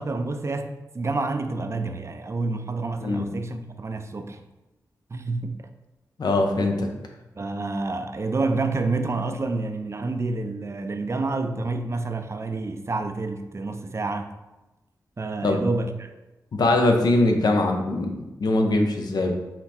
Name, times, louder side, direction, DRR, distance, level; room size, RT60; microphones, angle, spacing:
voice 1, 0.0-4.4 5.1-5.7 7.4-14.3 15.2-16.1, right 3 dB, 40° right, 0.5 m, -28 dB
voice 2, 6.2-6.9 15.4-15.6 16.5-19.3, left 2 dB, 70° left, 0.7 m, -22 dB
5.8 x 2.2 x 4.2 m
cardioid pair, 60°, 7 cm